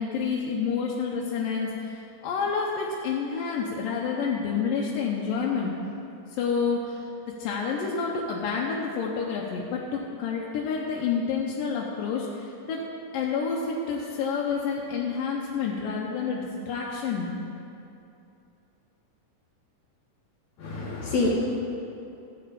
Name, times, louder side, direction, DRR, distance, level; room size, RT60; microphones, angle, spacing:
voice 1, 0.0-5.7 6.3-7.1 7.4-12.8 13.1-17.3, left 5 dB, 90° left, -3 dB, 2.5 m, -29 dB
voice 2, 20.6-21.3, left 3 dB, 60° left, -4 dB, 2.6 m, -27 dB
14.0 x 5.0 x 8.5 m, 2.7 s
omnidirectional pair, 3.9 m